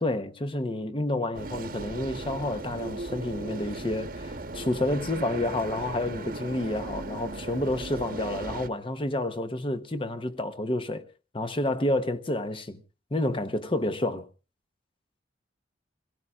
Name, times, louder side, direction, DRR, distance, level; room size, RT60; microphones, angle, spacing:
voice 1, 0.0-11.1 11.3-12.8 13.1-14.3, left 1 dB, 25° left, 0.8 m, -29 dB
sound 1, 1.3-8.7, right 2 dB, 50° right, 1.1 m, -37 dB
27.5 x 17.0 x 2.4 m
head